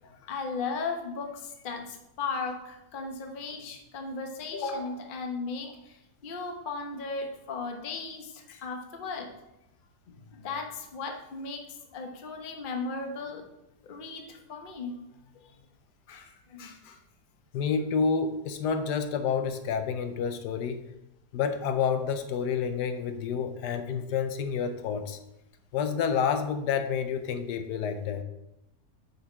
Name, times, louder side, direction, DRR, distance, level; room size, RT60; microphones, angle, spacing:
voice 1, 0.0-9.3 10.1-13.5 13.8-15.0 16.1-17.0, left 4 dB, 40° left, 4 dB, 0.9 m, -36 dB
voice 2, 17.5-20.8 21.3-25.2 25.7-28.2, left 6 dB, 80° left, 9 dB, 1.2 m, -29 dB
7.9 x 5.6 x 4.5 m, 0.89 s
omnidirectional pair, 1.8 m